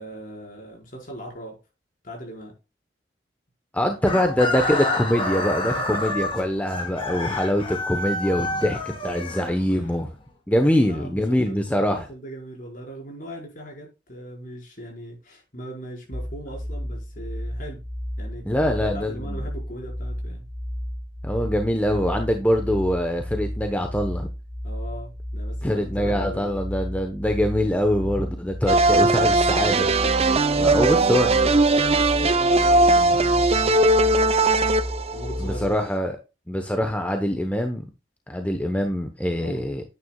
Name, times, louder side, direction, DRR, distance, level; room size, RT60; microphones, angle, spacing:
voice 1, 0.0-1.6 2.0-2.5 4.0-4.1 5.6-6.2 9.7-9.9 10.5-17.8 18.2-20.4 24.6-26.6 30.9-34.6 35.1-35.8 39.4-39.7, equal, 50° left, 5.0 m, -39 dB
voice 2, 3.7-10.1 10.5-12.1 18.4-19.4 21.2-24.3 25.6-29.9 30.5-31.3 35.4-36.2 36.5-37.8 38.3-39.8, equal, 10° left, 1.0 m, -24 dB
Chicken rooster, 4.0-10.0, left 2 dB, 30° left, 2.3 m, -28 dB
sound 1, 16.1-35.7, equal, 10° right, 2.5 m, -32 dB
sound 2, 28.7-35.7, right 2 dB, 35° right, 0.6 m, -19 dB
9.6 x 9.4 x 2.3 m
head